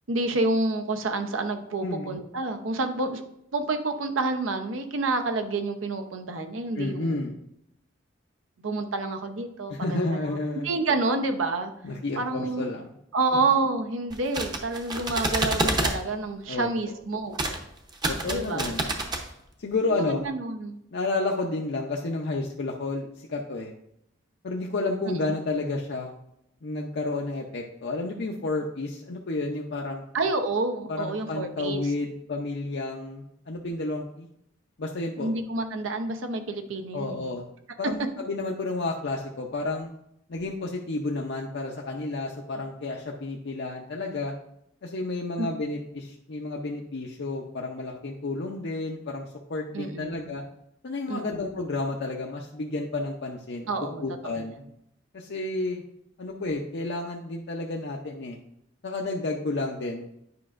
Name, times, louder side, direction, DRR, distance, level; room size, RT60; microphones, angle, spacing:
voice 1, 0.1-3.2 3.5-7.2 8.6-10.2 10.6-11.7 12.1-12.7 13.1-17.4 18.3-18.7 19.9-20.8 25.1-25.3 30.1-31.8 35.2-37.3 45.4-45.5 49.7-50.3 51.1-51.4 53.7-54.0 54.3-54.5, right 3 dB, 80° right, 6 dB, 0.7 m, -28 dB
voice 2, 1.8-2.1 6.8-7.3 9.7-10.7 11.8-12.9 13.3-13.4 16.5-16.7 18.1-18.9 19.6-20.2 20.9-23.7 24.4-26.1 26.6-30.0 30.9-34.3 34.8-35.3 36.9-37.4 37.8-39.9 40.3-44.3 44.8-50.4 50.8-53.7 54.0-54.6 55.1-55.8 56.2-58.4 58.8-60.0, left 2 dB, 60° left, 0 dB, 0.6 m, -31 dB
sound 1, 14.1-16.0 17.3-17.6 17.9-19.2, right 2 dB, 20° right, 0.7 m, -28 dB
9.5 x 5.2 x 2.5 m, 0.76 s
head